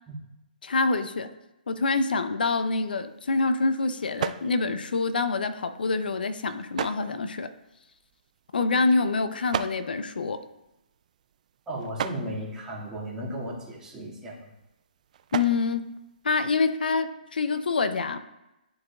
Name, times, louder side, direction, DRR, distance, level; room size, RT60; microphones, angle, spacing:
voice 1, 0.6-1.3 1.7-7.5 8.5-10.4 15.3-15.9 16.2-18.2, left 3 dB, 75° left, 11 dB, 0.6 m, -26 dB
sound 1, 2.6-16.9, right 9 dB, 50° right, 0.3 m, -40 dB
voice 2, 11.7-14.5, right 1 dB, 10° right, -6 dB, 2.0 m, -35 dB
11.0 x 4.8 x 2.4 m, 0.92 s
hypercardioid pair, 140°, 5 cm